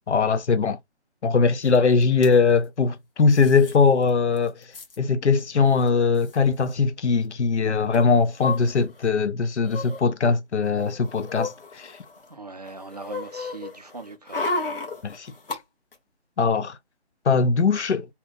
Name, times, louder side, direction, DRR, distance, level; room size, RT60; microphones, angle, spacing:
voice 1, 0.1-0.8 1.2-4.6 5.0-11.9 15.0-15.3 16.4-16.8 17.3-18.1, left 5 dB, 90° left, 0.5 m, -21 dB
sound 1, 1.7-1.8 2.0-2.3 3.3-3.8 4.1-4.2 4.4-5.0 5.8-5.9 6.1-6.3 7.9-9.1 9.6-10.0 10.6-12.3 12.7-15.6 15.9-16.0, left 3 dB, 55° left, 1.2 m, -33 dB
voice 2, 12.3-14.5, right 3 dB, 40° right, 0.4 m, -40 dB
2.8 x 2.1 x 3.6 m
figure-of-eight pair, 160°, 33 cm